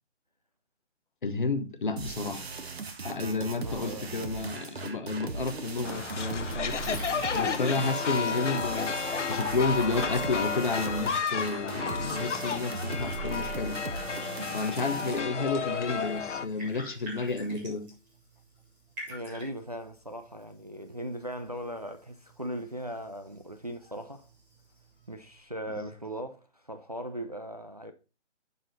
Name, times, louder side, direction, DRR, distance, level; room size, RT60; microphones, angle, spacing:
voice 1, 1.2-2.5 3.0-7.0 7.3-13.8 14.5-17.9 25.8-25.9, left 3 dB, 45° left, 0.9 m, -31 dB
sound 1, 2.0-15.2, right 4 dB, 60° right, 1.3 m, -38 dB
voice 2, 3.6-4.1 8.2-8.4 15.4-15.7 19.1-24.3 25.1-27.9, equal, 35° right, 0.5 m, -39 dB
sound 2, 5.8-16.5, left 6 dB, 75° left, 0.9 m, -33 dB
Liquid, 6.4-25.4, left 1 dB, 5° right, 1.5 m, -46 dB
11.0 x 4.2 x 4.0 m
hypercardioid pair, 175°, 36 cm